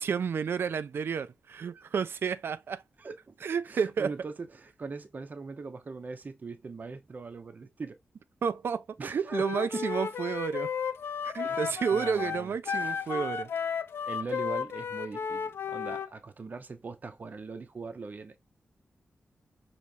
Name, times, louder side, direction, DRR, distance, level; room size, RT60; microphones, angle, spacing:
voice 1, 0.0-2.8 3.4-4.1 8.4-10.7 11.2-13.5, right 6 dB, 70° right, 0.4 m, -31 dB
voice 2, 3.0-3.4 3.7-8.0 9.0-9.9 11.4-13.0 14.1-18.4, right 4 dB, 45° right, 0.7 m, -41 dB
Wind instrument woodwind instrument, 9.3-16.1, left 6 dB, 75° left, 0.5 m, -33 dB
4.6 x 3.0 x 2.7 m
wide cardioid pair, 85°, 4 cm